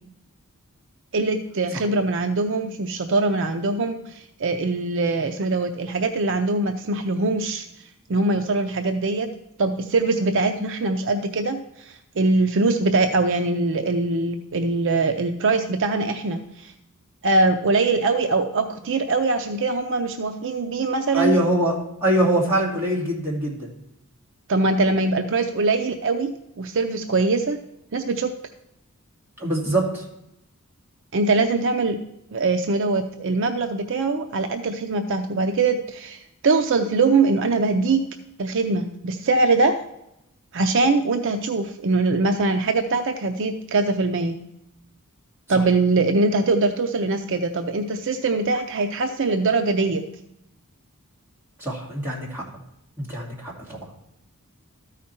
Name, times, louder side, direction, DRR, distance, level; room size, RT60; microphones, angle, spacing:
voice 1, 1.1-7.7 8.1-9.3 9.6-16.7 17.2-21.4 24.5-27.6 27.9-28.3 31.1-32.0 32.3-38.1 38.4-39.8 40.5-44.4 45.5-50.0, right 3 dB, 55° right, 6 dB, 0.5 m, -22 dB
voice 2, 21.1-21.7 22.0-23.7 29.4-30.0 51.6-52.4 53.0-53.8, right 1 dB, 10° right, -5 dB, 2.4 m, -23 dB
13.0 x 4.9 x 4.3 m, 0.83 s
head